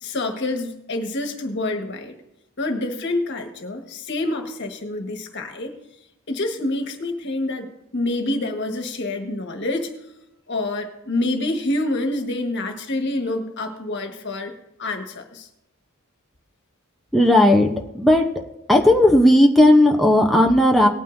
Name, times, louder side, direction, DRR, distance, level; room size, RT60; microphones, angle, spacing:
voice 1, 0.0-2.2 2.6-5.7 6.3-9.9 10.5-14.5 14.8-15.5, left 2 dB, 55° left, 5 dB, 1.6 m, -27 dB
voice 2, 17.1-18.2 18.7-20.9, left 1 dB, ahead, 0 dB, 0.8 m, -15 dB
19.0 x 9.2 x 2.7 m, 0.88 s
head